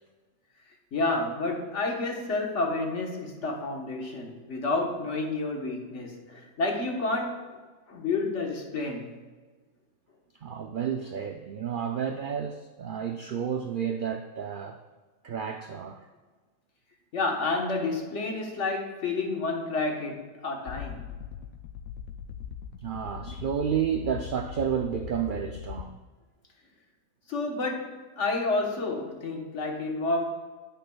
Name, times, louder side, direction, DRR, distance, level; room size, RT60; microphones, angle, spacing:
voice 1, 0.9-7.6 7.9-9.1 17.1-21.1 27.3-30.2, left 3 dB, 60° left, 1 dB, 1.5 m, -30 dB
voice 2, 10.4-14.8 15.2-16.0 22.8-26.0, right 8 dB, 80° right, 6 dB, 0.4 m, -31 dB
sound 1, 20.7-25.8, left 9 dB, 85° left, 1.0 m, -40 dB
10.0 x 9.1 x 2.3 m, 1.3 s
omnidirectional pair, 1.4 m